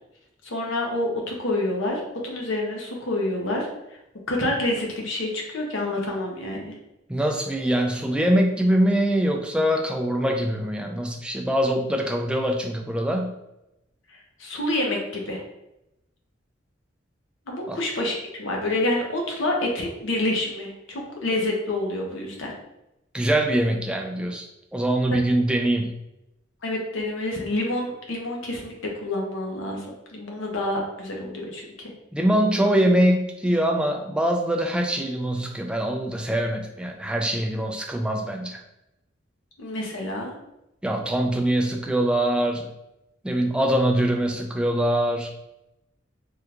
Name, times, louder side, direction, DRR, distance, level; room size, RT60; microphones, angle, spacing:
voice 1, 0.4-3.7 4.3-6.7 14.1-15.4 17.5-22.5 26.6-29.9 30.1-31.9 39.6-40.3, left 1 dB, 85° left, 0 dB, 0.8 m, -28 dB
voice 2, 7.1-13.3 17.7-17.8 23.1-24.5 24.7-26.0 32.1-38.6 40.8-42.7 43.2-45.3, right 1 dB, 5° right, 2 dB, 0.3 m, -23 dB
3.5 x 2.3 x 2.9 m, 0.87 s
head